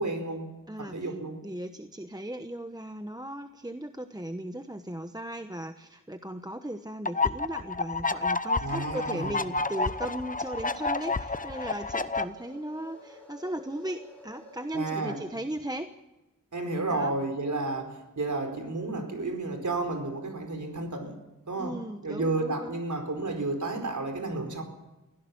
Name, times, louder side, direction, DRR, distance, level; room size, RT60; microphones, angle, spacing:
voice 1, 0.0-0.5 0.8-1.4 8.6-9.4 14.7-15.2 16.5-21.2 21.5-21.8 22.0-24.6, right 2 dB, 60° right, 5 dB, 4.7 m, -31 dB
voice 2, 0.7-1.1 1.4-15.9 16.9-17.1 21.6-22.8, right 1 dB, 10° right, 8 dB, 1.0 m, -37 dB
sound 1, 7.1-12.2, left 3 dB, 25° left, 0.9 m, -30 dB
sound 2, 8.7-15.2, equal, 5° left, 7.0 m, -51 dB
23.5 x 16.0 x 7.2 m, 1.0 s
wide cardioid pair, 95°, 34 cm